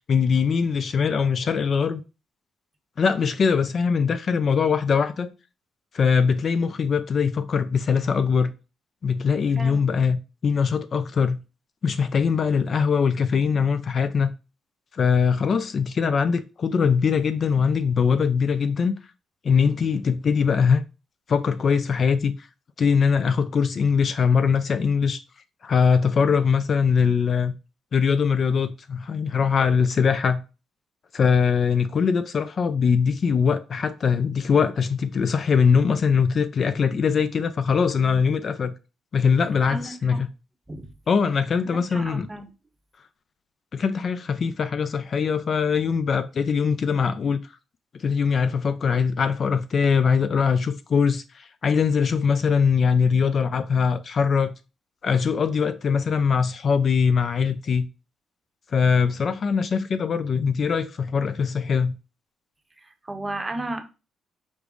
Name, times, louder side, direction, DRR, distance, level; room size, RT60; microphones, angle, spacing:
voice 1, 0.1-2.0 3.0-5.3 5.9-8.5 9.0-11.4 11.8-14.3 14.9-19.0 19.4-20.8 21.3-22.3 22.8-25.2 25.6-27.5 27.9-30.4 31.1-38.7 39.1-40.3 41.1-42.3 43.7-47.4 47.9-54.5 55.0-57.9 58.7-62.0, left 6 dB, 50° left, 0.4 m, -22 dB
voice 2, 39.7-40.2 40.7-40.9 41.9-42.5 62.8-63.9, right 2 dB, 20° right, 0.7 m, -33 dB
5.2 x 2.0 x 4.7 m
cardioid pair, 90°, 0 cm